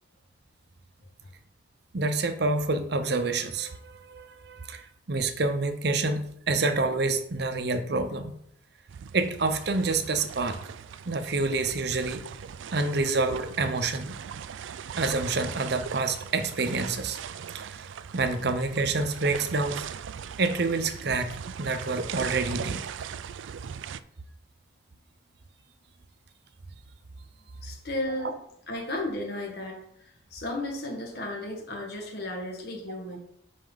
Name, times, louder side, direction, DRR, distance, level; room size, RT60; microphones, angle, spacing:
voice 1, 1.9-8.3 9.1-10.6 11.1-12.2 12.7-14.1 15.0-17.2 17.5-19.9 20.4-22.9, right 3 dB, 55° right, 8 dB, 0.7 m, -28 dB
sound 1, 8.9-24.0, right 7 dB, 75° right, 0.3 m, -39 dB
voice 2, 27.6-28.4 28.7-33.2, left 1 dB, 55° left, 0 dB, 1.8 m, -34 dB
10.5 x 4.3 x 3.9 m, 0.72 s
head